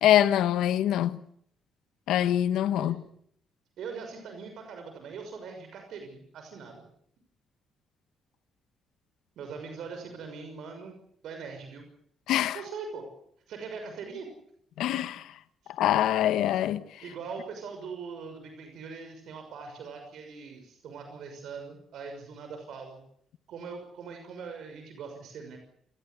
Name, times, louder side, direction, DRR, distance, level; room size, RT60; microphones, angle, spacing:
voice 1, 0.0-1.2 2.1-3.0 12.3-12.6 14.8-15.2 15.8-16.8, left 12 dB, 85° left, 1.3 m, -24 dB
voice 2, 3.8-6.8 9.4-10.9 11.2-11.8 12.5-13.1 13.5-14.3 17.0-23.0 23.5-25.6, right 5 dB, 75° right, 6.1 m, -41 dB
28.5 x 18.5 x 8.4 m
cardioid pair, 90°, 0 cm